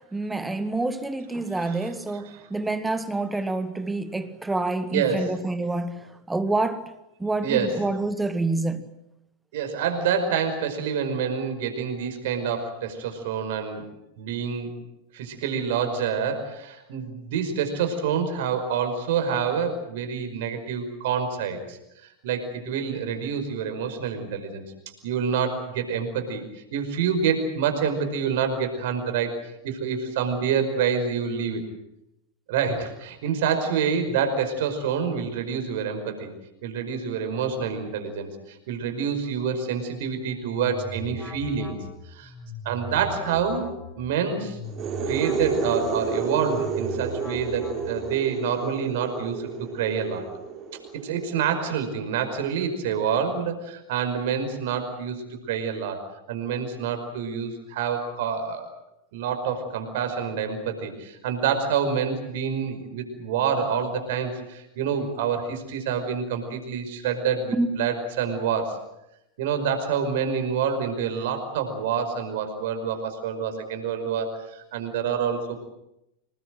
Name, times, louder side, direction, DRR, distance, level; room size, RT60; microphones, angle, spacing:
voice 1, 0.0-6.9 7.2-8.9 67.5-67.7, right 2 dB, 10° right, 1.4 m, -27 dB
voice 2, 4.9-5.3 7.4-7.8 9.5-13.8 14.2-14.7 15.1-21.8 22.2-24.6 25.0-26.4 26.7-29.3 29.6-31.6 32.5-36.3 36.6-41.8 42.1-42.3 42.7-43.7 44.0-44.6 45.1-50.3 51.0-56.0 56.3-58.7 59.1-68.8 69.4-75.6, right 7 dB, 55° right, 5.3 m, -27 dB
sound 1, 40.2-48.3, left 2 dB, 10° left, 5.3 m, -39 dB
sound 2, 44.6-52.2, right 5 dB, 30° right, 4.4 m, -31 dB
27.0 x 20.0 x 7.9 m
figure-of-eight pair, 90°, 0 cm